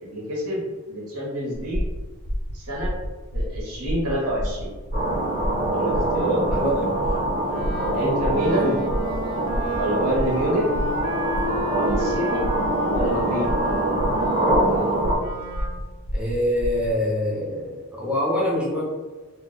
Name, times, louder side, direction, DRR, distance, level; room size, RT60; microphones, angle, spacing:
voice 1, 0.0-1.8 2.5-2.9 3.3-4.7 5.7-6.4 7.9-8.7 9.7-10.6 11.8-12.5 12.9-13.5, equal, 90° right, -4 dB, 1.0 m, -27 dB
sound 1, 1.5-17.0, equal, 85° left, 0.8 m, -30 dB
sound 2, 4.9-15.1, right 1 dB, 40° right, 0.9 m, -24 dB
Wind instrument woodwind instrument, 7.4-15.8, equal, 70° right, 0.5 m, -33 dB
voice 2, 16.1-18.8, equal, 5° right, -5 dB, 0.5 m, -24 dB
2.3 x 2.1 x 3.9 m, 1.3 s
head